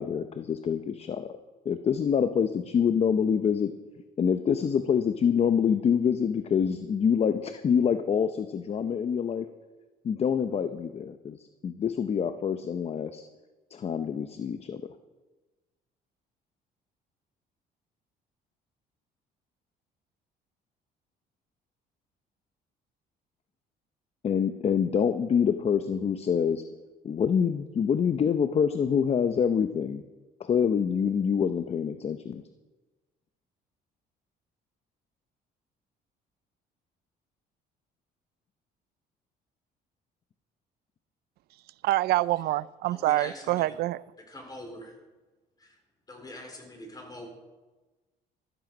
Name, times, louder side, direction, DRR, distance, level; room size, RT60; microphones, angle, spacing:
voice 1, 0.0-1.4 1.6-3.7 4.2-9.5 10.0-13.2 13.7-14.9 24.2-26.6 27.0-30.0 30.4-32.4, left 7 dB, 35° left, 10 dB, 0.7 m, -26 dB
voice 2, 41.8-44.0, right 16 dB, 70° right, 20 dB, 0.4 m, -26 dB
voice 3, 42.9-43.7 44.3-44.9 45.6-45.8 46.1-47.3, left 1 dB, 20° left, 3 dB, 3.9 m, -43 dB
13.5 x 13.5 x 5.2 m, 1.2 s
cardioid pair, 110°, 17 cm